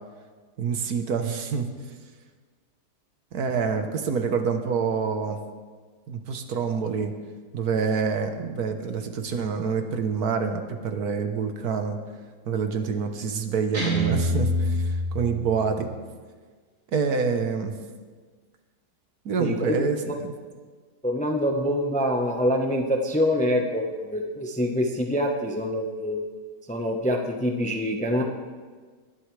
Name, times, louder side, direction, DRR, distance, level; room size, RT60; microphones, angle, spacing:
voice 1, 0.6-1.7 3.3-5.4 6.1-7.1 7.5-12.0 12.5-15.9 16.9-17.8 19.2-20.3, right 5 dB, 70° right, 6 dB, 1.5 m, -27 dB
Guitar, 13.7-15.8, equal, 50° right, 4.6 m, -26 dB
voice 2, 19.4-19.8 20.0-20.2 21.0-26.2 26.7-28.2, equal, 5° left, 2 dB, 0.7 m, -25 dB
20.5 x 11.5 x 3.3 m, 1.5 s
omnidirectional pair, 1.7 m